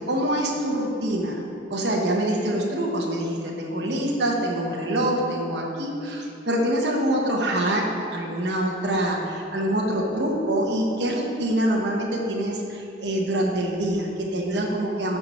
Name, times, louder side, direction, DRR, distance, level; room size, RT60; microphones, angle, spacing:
voice 1, 0.1-1.4 1.7-7.8 8.1-15.2, right 1 dB, 70° right, -1 dB, 1.1 m, -25 dB
12.5 x 4.7 x 4.3 m, 2.7 s
head